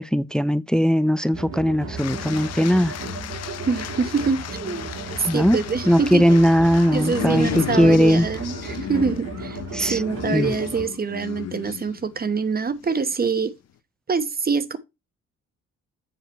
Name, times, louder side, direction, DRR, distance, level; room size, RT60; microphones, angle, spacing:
voice 1, 0.0-2.9 5.2-5.6 5.9-7.5 7.8-8.3 9.7-10.0 10.3-10.5, equal, 5° left, 0.4 m, -19 dB
sound 1, 1.3-10.9, right 2 dB, 90° right, 3.1 m, -35 dB
sound 2, 2.0-12.3 12.8-13.1, left 11 dB, 60° left, 0.7 m, -34 dB
voice 2, 3.7-4.9 5.2-6.4 6.9-13.5 14.1-14.8, right 5 dB, 30° right, 1.0 m, -25 dB
7.8 x 4.9 x 4.5 m
cardioid pair, 90°, 30 cm